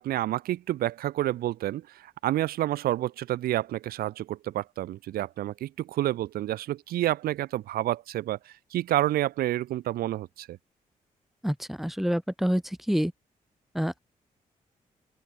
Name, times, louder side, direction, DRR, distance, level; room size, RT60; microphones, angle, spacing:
voice 1, 0.0-10.6, right 14 dB, 90° right, 3.9 m, -29 dB
voice 2, 11.4-13.1 13.7-14.0, equal, ahead, 4.0 m, -27 dB
open air
cardioid pair, 65°, 15 cm